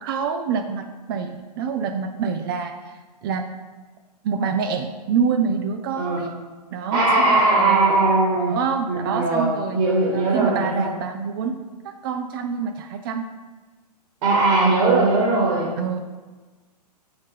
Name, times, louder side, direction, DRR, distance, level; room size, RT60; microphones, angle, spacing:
voice 1, 0.0-2.7 3.2-3.4 4.2-6.3 6.7-7.8 8.5-9.8 10.1-11.5 11.8-13.2 15.8-16.0, right 6 dB, 35° right, 7 dB, 0.4 m, -26 dB
voice 2, 6.9-8.5 8.9-10.9 14.2-15.7, right 3 dB, 50° right, -5 dB, 1.9 m, -19 dB
6.6 x 4.2 x 3.5 m, 1.3 s
hypercardioid pair, 120°, 21 cm